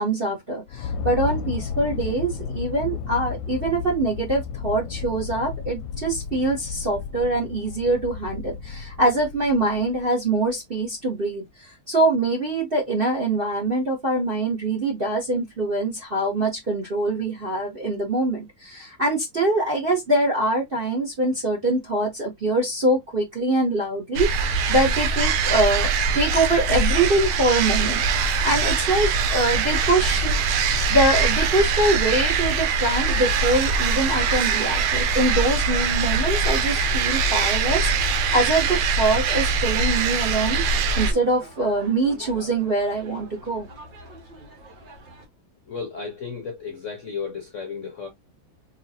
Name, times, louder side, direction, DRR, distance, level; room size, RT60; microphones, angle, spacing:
voice 1, 0.0-25.9 26.1-30.4 30.9-40.6 40.9-43.7, right 2 dB, 40° right, 0.8 m, -24 dB
sound 1, 0.7-10.3, left 5 dB, 75° left, 1.2 m, -33 dB
sound 2, 24.2-41.1, right 4 dB, 85° right, 1.6 m, -22 dB
sound 3, 32.9-45.3, right 2 dB, 60° right, 2.1 m, -45 dB
voice 2, 45.7-48.1, left 5 dB, 60° left, 0.8 m, -33 dB
4.0 x 3.0 x 2.7 m
omnidirectional pair, 2.3 m